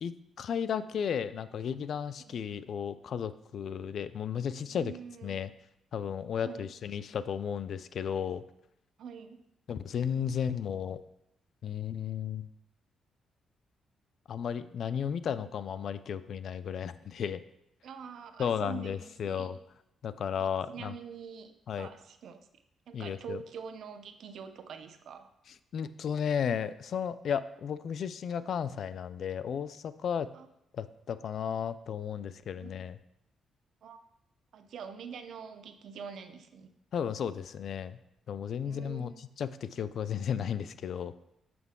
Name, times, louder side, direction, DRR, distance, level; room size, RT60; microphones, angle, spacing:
voice 1, 0.0-4.9 5.2-5.5 5.9-8.4 9.7-11.0 11.6-12.5 14.3-17.4 18.4-19.6 20.0-20.9 21.7-21.9 22.9-23.4 25.7-30.3 30.7-33.0 36.9-38.0 38.3-41.1, left 8 dB, 60° left, 14 dB, 0.3 m, -34 dB
voice 2, 4.7-5.4 6.4-6.7 9.0-9.4 17.8-19.5 20.4-21.5 21.8-22.4 22.9-25.3 30.3-30.5 32.5-32.7 33.8-34.0 34.5-36.7 38.6-39.1, right 6 dB, 70° right, 8 dB, 0.6 m, -45 dB
6.3 x 6.0 x 3.6 m, 0.80 s
cardioid pair, 110°, 0 cm